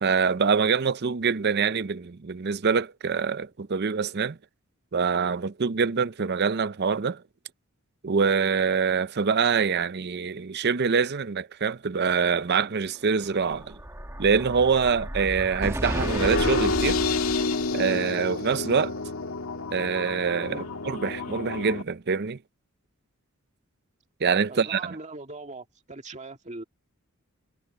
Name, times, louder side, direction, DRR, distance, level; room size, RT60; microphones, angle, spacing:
voice 1, 0.0-4.4 4.9-7.2 8.0-13.8 14.2-17.0 17.7-18.9 19.7-22.4 24.2-25.0, right 5 dB, 50° right, 0.6 m, -25 dB
Explosion, 13.2-17.8, equal, 15° right, 2.3 m, -33 dB
sound 1, 15.8-21.8, left 3 dB, 85° left, 2.1 m, -29 dB
voice 2, 24.5-26.6, right 2 dB, 35° right, 1.9 m, -40 dB
head